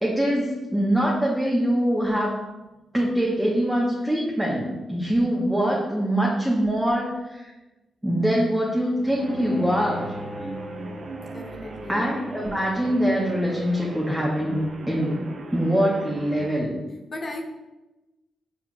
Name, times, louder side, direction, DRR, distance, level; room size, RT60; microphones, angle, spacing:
voice 1, 0.0-2.4 2.9-7.5 8.0-10.1 11.9-15.2 15.5-16.7, equal, 10° right, -3 dB, 0.9 m, -23 dB
Bowed string instrument, 9.0-14.2, equal, 30° left, 0.9 m, -39 dB
sound 1, 9.2-16.6, right 3 dB, 60° right, 0.4 m, -39 dB
voice 2, 11.3-12.0 17.1-17.4, left 1 dB, 45° left, 3 dB, 0.5 m, -35 dB
4.3 x 4.0 x 2.2 m, 1.1 s
hypercardioid pair, 40°, 0 cm